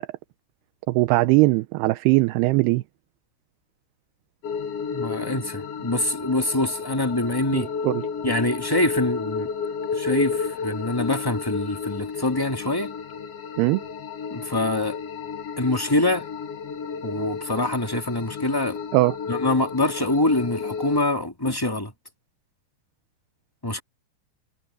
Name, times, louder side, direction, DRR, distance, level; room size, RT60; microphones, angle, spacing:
voice 1, 0.9-2.8 7.5-8.0 13.6-13.8 18.9-19.2, right 21 dB, 80° right, 2.5 m, -20 dB
sound 1, 4.4-21.0, left 6 dB, 75° left, 1.4 m, -32 dB
voice 2, 4.9-7.7 8.2-9.5 9.9-12.9 14.3-15.0 15.6-16.3 17.0-18.8 19.3-21.9 23.6-23.8, left 2 dB, 15° left, 0.7 m, -25 dB
omnidirectional pair, 4.9 m